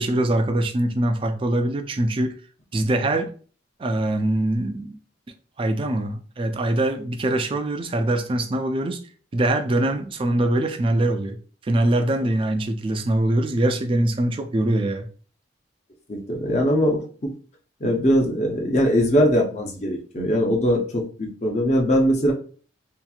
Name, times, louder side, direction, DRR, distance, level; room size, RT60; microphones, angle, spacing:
voice 1, 0.0-2.3 2.7-3.3 3.8-5.0 5.6-9.0 9.3-11.4 11.7-15.1, right 1 dB, 30° right, 0.3 m, -23 dB
voice 2, 16.1-17.3 17.8-22.3, equal, 40° left, 0.6 m, -21 dB
2.8 x 2.5 x 2.3 m
head